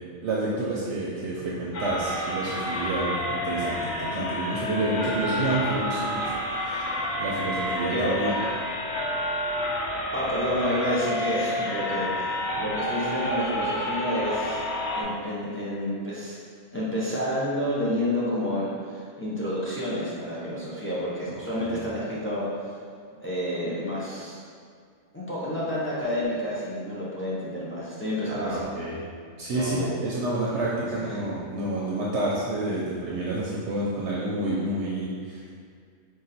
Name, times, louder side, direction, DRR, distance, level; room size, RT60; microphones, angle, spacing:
voice 1, 0.2-8.3 11.9-12.0 21.3-21.8 28.3-29.0 29.4-35.5, right 2 dB, 65° right, -5 dB, 0.8 m, -29 dB
sound 1, 1.7-15.0, left 1 dB, 65° left, 0.8 m, -29 dB
voice 2, 7.9-8.3 10.1-12.3 12.6-14.6 15.0-16.4 16.7-18.7 18.9-22.5 23.2-24.4 25.1-28.7 29.5-29.9 30.9-31.2, equal, 15° left, -8 dB, 0.5 m, -29 dB
3.8 x 2.5 x 4.1 m, 2.1 s
omnidirectional pair, 1.3 m